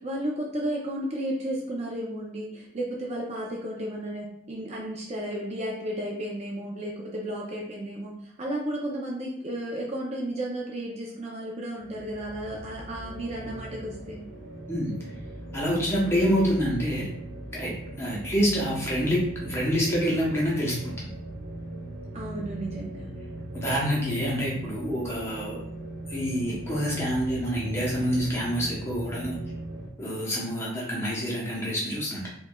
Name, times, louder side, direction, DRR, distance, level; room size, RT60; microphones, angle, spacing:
voice 1, 0.0-14.3 22.1-23.2, right 1 dB, 30° right, -2 dB, 0.5 m, -33 dB
sound 1, 11.8-29.9, right 1 dB, 70° right, 1.1 m, -39 dB
voice 2, 15.5-17.1 17.5-21.1 23.5-25.6 26.1-29.4 30.0-32.2, equal, 15° left, -5 dB, 0.7 m, -27 dB
4.5 x 2.4 x 2.2 m, 0.69 s
head